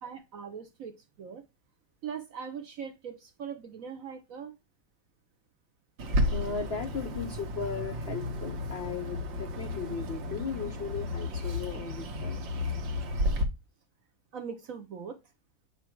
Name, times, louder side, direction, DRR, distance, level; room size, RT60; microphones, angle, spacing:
voice 1, 0.0-1.4 2.0-4.5 14.3-15.2, right 7 dB, 60° right, 0.9 m, -41 dB
Bird, 6.0-13.4, left 1 dB, 90° right, 1.8 m, -32 dB
voice 2, 6.3-12.4, left 5 dB, 65° left, 0.6 m, -37 dB
8.1 x 2.9 x 4.5 m
omnidirectional pair, 2.0 m